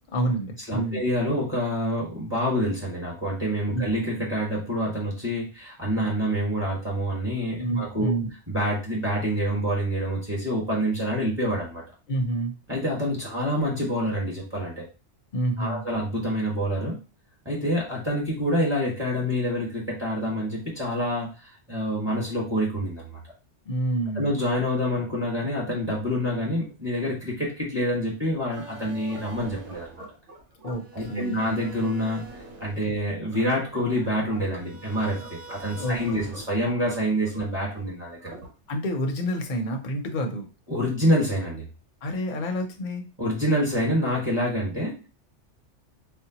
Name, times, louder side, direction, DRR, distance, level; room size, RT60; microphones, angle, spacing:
voice 1, 0.1-1.0 3.7-3.8 7.6-8.3 12.1-12.5 15.3-15.8 23.7-24.3 30.6-31.4 35.8-36.3 38.7-40.5 42.0-43.0, right 1 dB, 50° left, 3 dB, 0.7 m, -28 dB
voice 2, 0.7-8.1 8.5-11.8 12.7-14.8 15.6-17.0 17.4-23.2 24.1-29.9 30.9-32.2 32.6-38.3 40.7-41.6 43.2-45.1, equal, 20° right, -5 dB, 1.3 m, -27 dB
sound 1, 28.5-38.9, right 2 dB, 75° right, 1.2 m, -43 dB
4.2 x 2.1 x 2.8 m, 0.32 s
omnidirectional pair, 1.2 m